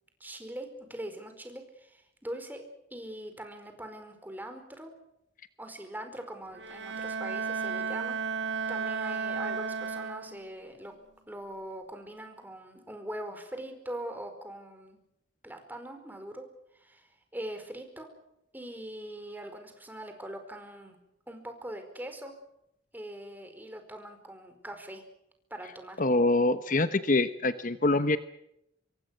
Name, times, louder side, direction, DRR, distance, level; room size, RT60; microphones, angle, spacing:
voice 1, 0.2-2.6 2.9-4.9 5.6-8.2 8.7-10.9 11.3-15.0 15.4-16.5 16.7-18.1 18.5-21.0 21.3-22.3 22.9-25.0 25.5-26.0, right 1 dB, 10° right, 6 dB, 4.8 m, -42 dB
Bowed string instrument, 6.5-10.6, right 5 dB, 80° right, 1.6 m, -33 dB
voice 2, 26.0-28.2, left 2 dB, 45° left, 11 dB, 1.1 m, -25 dB
26.0 x 23.0 x 6.5 m, 0.79 s
head